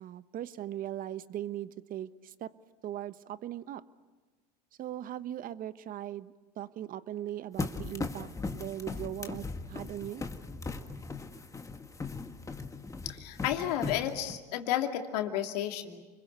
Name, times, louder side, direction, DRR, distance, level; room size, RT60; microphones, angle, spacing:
voice 1, 0.0-2.5 2.8-3.8 4.8-10.2, right 12 dB, 40° right, 14 dB, 1.2 m, -39 dB
sound 1, 7.6-14.4, left 3 dB, 15° left, 1.8 m, -38 dB
voice 2, 13.0-16.0, left 11 dB, 70° left, 4 dB, 2.7 m, -32 dB
29.5 x 22.0 x 8.2 m, 1.3 s
hypercardioid pair, 90°, 21 cm